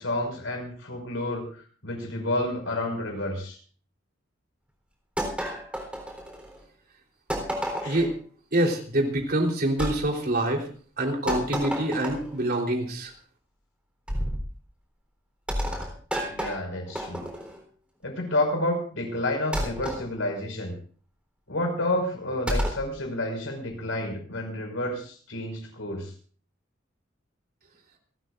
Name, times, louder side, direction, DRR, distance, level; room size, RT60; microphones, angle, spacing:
voice 1, 0.0-1.5 1.8-3.6 7.8-8.0 16.2-17.2 18.0-20.8 21.5-26.1, left 1 dB, 90° left, 3 dB, 5.8 m, -30 dB
sound 1, 5.2-6.6 7.3-8.1 9.8-10.0 11.3-12.4 14.1-14.5 15.5-17.6 19.5-20.0 22.5-22.9, equal, 5° right, 3.8 m, -31 dB
voice 2, 8.5-10.6 11.0-13.1, right 1 dB, 50° right, 1 dB, 3.7 m, -25 dB
28.5 x 13.0 x 2.6 m, 0.43 s
head